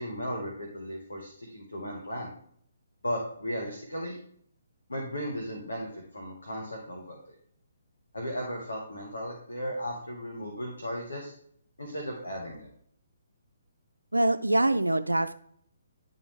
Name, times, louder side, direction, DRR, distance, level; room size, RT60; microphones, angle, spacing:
voice 1, 0.0-2.3 3.0-4.2 4.9-7.3 8.1-11.3 11.8-12.7, equal, 80° left, 0 dB, 1.4 m, -36 dB
voice 2, 14.1-15.3, right 1 dB, 90° right, 9 dB, 0.3 m, -24 dB
10.0 x 3.9 x 3.6 m, 0.65 s
figure-of-eight pair, 135°, 0 cm